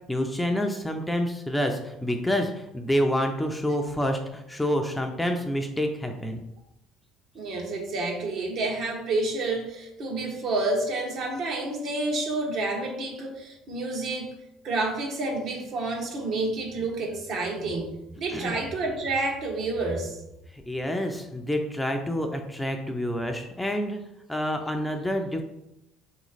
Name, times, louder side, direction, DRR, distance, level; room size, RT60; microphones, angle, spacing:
voice 1, 0.1-6.4 18.3-18.5 20.5-24.0 24.3-25.4, equal, 5° left, 3 dB, 0.5 m, -28 dB
voice 2, 7.3-14.4 14.6-20.2, right 2 dB, 55° right, 0 dB, 1.2 m, -29 dB
4.2 x 3.0 x 4.0 m, 0.87 s
supercardioid pair, 95°, 0 cm